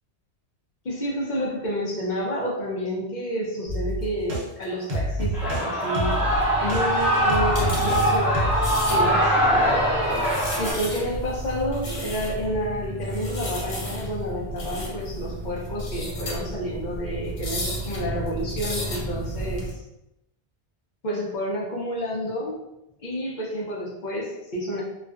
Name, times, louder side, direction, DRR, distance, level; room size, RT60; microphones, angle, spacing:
voice 1, 0.8-6.2 6.6-9.9 10.6-19.7 21.0-22.6 23.0-24.8, equal, 50° left, -4 dB, 0.6 m, -30 dB
sound 1, 3.7-4.4 4.9-5.6 5.9-8.0 8.3-8.7, right 1 dB, 65° right, 0.9 m, -28 dB
Shout / Cheering, 5.3-10.7, equal, ahead, 0.6 m, -23 dB
sound 2, 6.1-19.7, equal, 85° left, 1.0 m, -32 dB
2.4 x 2.3 x 2.3 m, 0.89 s
omnidirectional pair, 1.2 m